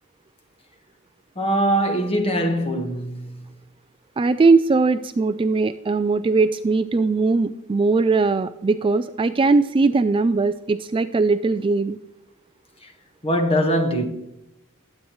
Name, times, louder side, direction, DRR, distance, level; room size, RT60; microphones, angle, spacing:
voice 1, 1.4-3.4 13.2-14.1, right 1 dB, 25° left, 1.4 m, -22 dB
voice 2, 4.2-12.0, right 3 dB, 25° right, 0.3 m, -20 dB
20.5 x 8.7 x 3.1 m
head